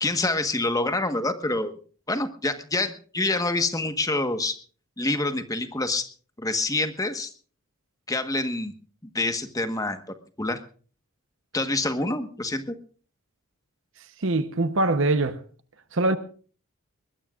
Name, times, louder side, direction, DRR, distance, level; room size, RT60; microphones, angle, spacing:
voice 1, 0.0-1.7 2.1-4.6 5.0-6.1 6.4-7.3 8.1-8.7 9.1-10.0 10.4-10.6 11.5-12.7, left 2 dB, 15° left, 1.3 m, -26 dB
voice 2, 14.2-15.4 15.9-16.2, right 2 dB, 60° right, 1.0 m, -23 dB
22.0 x 20.0 x 2.5 m
head